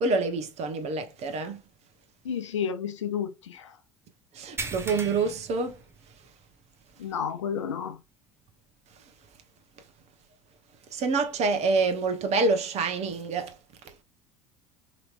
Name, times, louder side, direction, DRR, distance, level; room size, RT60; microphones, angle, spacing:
voice 1, 0.0-1.6 4.3-5.8 10.9-13.6 13.8-13.9, right 3 dB, 45° right, 1.0 m, -27 dB
voice 2, 2.2-3.8 7.0-8.0, left 7 dB, 85° left, 0.6 m, -31 dB
sound 1, 4.6-6.5 6.8-7.0 7.5-7.6 9.2-9.3, right 4 dB, 15° right, 0.8 m, -38 dB
3.0 x 3.0 x 2.5 m
hypercardioid pair, 70°, 15 cm